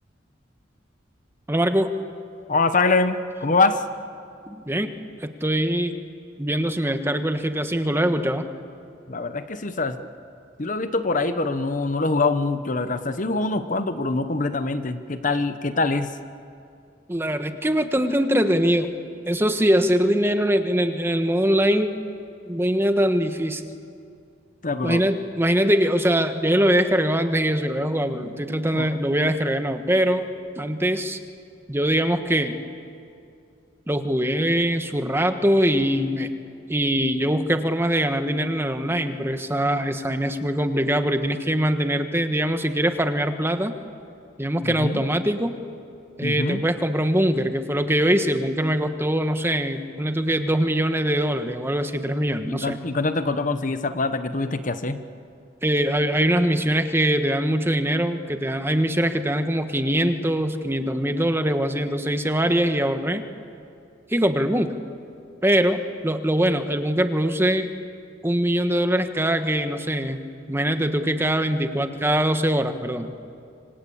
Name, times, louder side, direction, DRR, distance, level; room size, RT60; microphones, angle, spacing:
voice 1, 1.5-1.9 4.5-4.9 5.2-5.9 6.4-8.5 17.1-18.9 19.3-21.9 22.5-23.6 24.8-30.3 30.6-31.2 31.7-32.6 33.9-36.3 36.7-43.8 44.4-45.6 46.2-52.8 55.6-63.2 64.1-64.8 65.4-67.7 68.2-70.2 70.5-73.1, right 1 dB, 15° right, 7 dB, 1.3 m, -22 dB
voice 2, 2.5-3.8 9.1-10.1 10.6-16.1 24.6-25.1 28.2-28.3 28.7-28.9 44.6-45.0 46.2-46.6 52.5-55.0, left 3 dB, 45° left, 10 dB, 1.1 m, -24 dB
26.5 x 25.5 x 8.7 m, 2.5 s
head